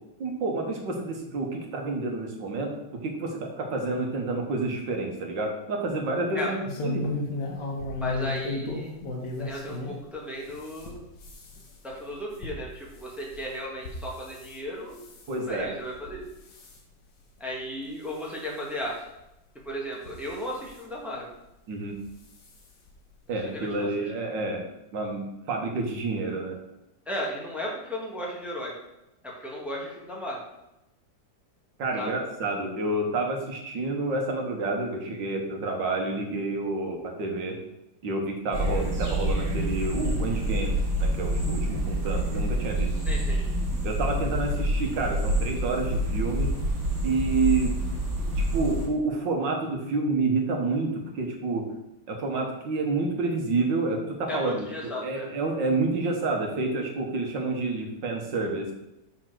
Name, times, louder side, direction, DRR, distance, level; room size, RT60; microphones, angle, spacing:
voice 1, 0.2-2.7 3.0-7.1 15.3-15.7 21.7-22.0 23.3-24.6 24.9-26.6 31.8-37.6 38.0-42.9 43.8-46.5 47.0-47.7 48.3-51.6 52.1-58.7, right 3 dB, 80° right, 1 dB, 1.9 m, -29 dB
sound 1, 6.7-10.0 10.4-14.6 14.9-15.3 15.9-16.2 16.5-16.8 17.4-17.5 17.8-17.9 19.1-19.2 19.9-20.8 21.9-22.1 22.4-22.5 22.9-23.0, left 2 dB, 80° left, 1.9 m, -35 dB
voice 2, 8.0-8.9 9.4-11.0 11.8-15.0 15.3-16.2 17.4-19.0 19.6-21.3 23.4-23.9 27.1-28.7 29.2-30.4 32.0-32.1 43.1-43.4 54.3-55.3, equal, ahead, -3 dB, 1.3 m, -35 dB
sound 2, 38.5-48.9, right 1 dB, 55° right, 2.4 m, -27 dB
5.6 x 4.3 x 6.1 m, 0.92 s
omnidirectional pair, 2.0 m